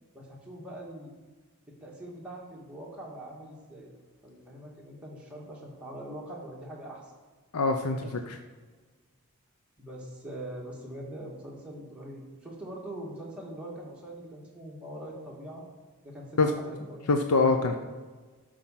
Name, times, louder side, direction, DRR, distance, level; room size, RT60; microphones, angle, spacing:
voice 1, 0.1-1.1 1.7-3.9 4.2-7.1 7.9-8.2 9.8-15.7 16.0-17.1, right 1 dB, 5° right, -4 dB, 1.9 m, -43 dB
voice 2, 7.5-8.4 16.4-16.5 17.1-17.8, left 3 dB, 80° left, 6 dB, 0.6 m, -24 dB
12.5 x 4.9 x 5.8 m, 1.4 s
head